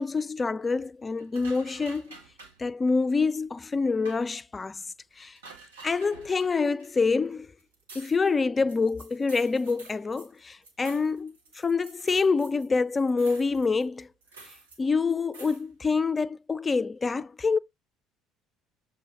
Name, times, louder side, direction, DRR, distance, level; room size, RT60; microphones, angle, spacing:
voice 1, 0.0-2.2 2.6-4.8 5.2-5.4 5.8-7.5 7.9-14.1 14.8-17.6, left 4 dB, 25° left, 0.4 m, -26 dB
sound 1, 1.2-2.6 3.4-3.5 4.0-4.3 5.2-6.9 7.3-7.4 7.6-12.7 12.9-14.8 15.3-15.6, right 3 dB, 80° right, 1.1 m, -49 dB
6.8 x 4.0 x 3.9 m
figure-of-eight pair, 55°, 0 cm